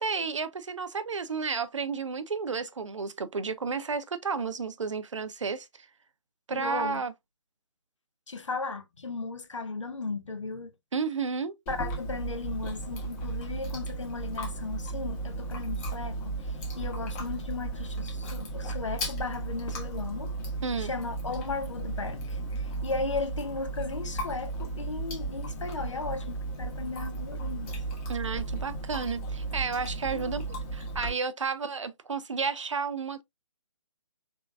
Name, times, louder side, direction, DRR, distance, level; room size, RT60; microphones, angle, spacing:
voice 1, 0.0-5.9 6.5-7.1 10.9-11.5 20.6-20.9 28.1-33.2, right 5 dB, 75° right, 0.7 m, -32 dB
voice 2, 6.5-7.0 8.3-10.7 11.7-20.3 20.8-27.7 28.3-28.4 30.1-30.3, left 3 dB, 75° left, 0.9 m, -36 dB
Chewing mastication, 11.7-31.1, right 2 dB, 25° left, 1.2 m, -35 dB
3.7 x 3.5 x 2.2 m
figure-of-eight pair, 145°, 16 cm